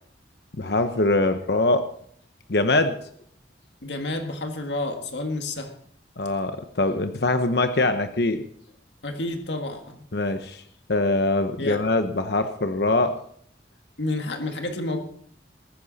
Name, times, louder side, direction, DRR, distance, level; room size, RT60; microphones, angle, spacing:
voice 1, 0.6-1.8 2.5-2.9 6.2-8.4 10.1-10.6 10.9-13.2, left 2 dB, 65° left, 8 dB, 0.9 m, -23 dB
voice 2, 3.8-5.7 9.0-10.0 11.6-11.8 14.0-15.0, left 2 dB, 85° left, 4 dB, 1.8 m, -30 dB
20.0 x 10.0 x 4.1 m, 0.63 s
head